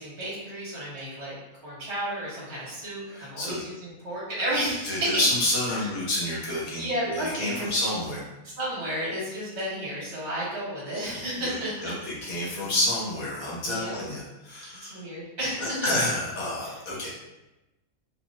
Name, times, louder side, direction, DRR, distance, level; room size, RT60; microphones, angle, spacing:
voice 1, 0.0-1.3 1.6-5.2 5.8-5.9 6.7-7.7 8.6-11.9 13.5-14.1 14.9-15.9 16.6-16.7, right 1 dB, 50° right, -7 dB, 1.9 m, -32 dB
voice 2, 3.1-3.6 4.8-8.2 11.4-15.0 15.6-17.1, left 1 dB, 75° left, -5 dB, 1.6 m, -29 dB
4.1 x 2.8 x 2.9 m, 1.0 s
omnidirectional pair, 1.5 m